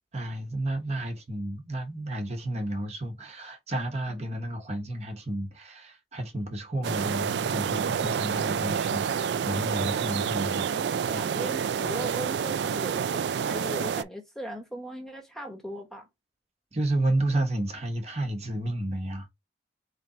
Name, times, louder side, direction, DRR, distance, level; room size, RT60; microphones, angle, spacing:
voice 1, 0.1-10.6 11.1-11.3 11.8-12.0 16.7-19.3, right 1 dB, 40° right, 1.0 m, -31 dB
sound 1, 6.8-14.0, right 7 dB, 80° right, 0.3 m, -28 dB
voice 2, 9.8-10.1 10.6-16.1, equal, ahead, 1.0 m, -39 dB
4.2 x 3.3 x 3.7 m
head